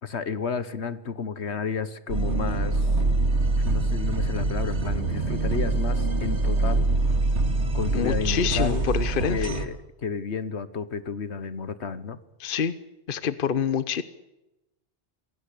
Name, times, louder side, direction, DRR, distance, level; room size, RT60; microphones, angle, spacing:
voice 1, 0.0-2.9 3.5-6.9 7.7-8.8 9.3-12.2, left 5 dB, 70° left, 15 dB, 1.6 m, -32 dB
sound 1, 2.1-9.7, right 2 dB, 80° right, 2.5 m, -24 dB
voice 2, 7.9-9.5 12.4-12.7 13.1-14.0, left 7 dB, 55° left, 15 dB, 1.1 m, -26 dB
26.5 x 17.0 x 8.5 m, 0.98 s
omnidirectional pair, 1.2 m